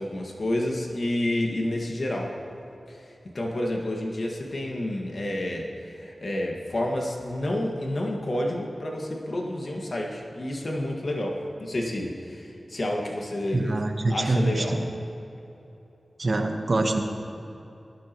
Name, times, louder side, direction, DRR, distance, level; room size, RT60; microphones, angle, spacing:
voice 1, 0.0-2.3 2.9-3.0 3.3-13.8 14.1-14.8, left 1 dB, 60° left, -1 dB, 1.9 m, -29 dB
voice 2, 13.5-14.8 16.2-17.0, right 2 dB, 60° right, 4 dB, 1.2 m, -25 dB
19.0 x 12.5 x 3.1 m, 2.9 s
cardioid pair, 55°, 0 cm